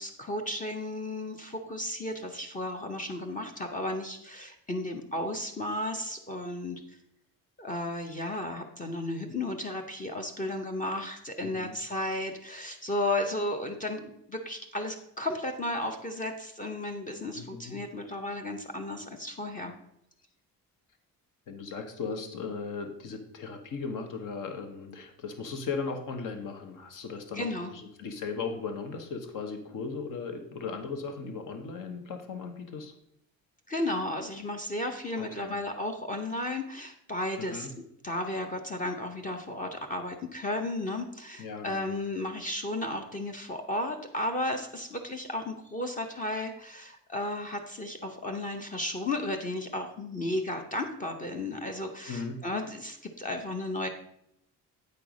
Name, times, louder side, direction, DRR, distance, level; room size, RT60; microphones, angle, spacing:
voice 1, 0.0-6.8 7.6-19.7 27.3-27.7 33.7-37.7 38.0-53.9, left 1 dB, 25° left, 4 dB, 0.8 m, -34 dB
voice 2, 11.4-11.7 17.3-17.7 21.5-32.9 35.2-35.5 37.4-37.7 41.4-42.0 52.1-52.4, left 5 dB, 65° left, 6 dB, 1.3 m, -37 dB
8.4 x 4.6 x 5.1 m, 0.76 s
cardioid pair, 130°, 35 cm